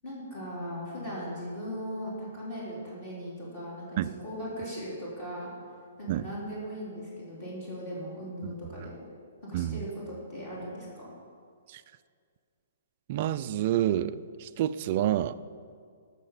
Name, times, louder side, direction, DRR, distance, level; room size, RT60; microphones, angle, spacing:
voice 1, 0.0-5.5 6.0-9.0 9.4-11.1, equal, 25° left, -7 dB, 4.2 m, -38 dB
voice 2, 9.5-9.9 11.7-11.8 13.1-15.3, right 12 dB, 30° right, 13 dB, 0.4 m, -28 dB
18.0 x 6.6 x 7.1 m, 2.2 s
hypercardioid pair, 175°, 0 cm